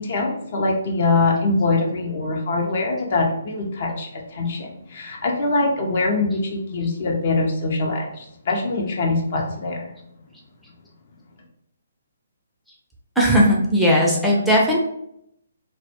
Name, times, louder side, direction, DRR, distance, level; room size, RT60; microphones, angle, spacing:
voice 1, 0.0-9.9, left 3 dB, 55° left, 1 dB, 0.5 m, -23 dB
voice 2, 13.2-14.8, equal, ahead, -5 dB, 0.5 m, -17 dB
2.1 x 2.1 x 2.8 m, 0.74 s
hypercardioid pair, 145°, 0 cm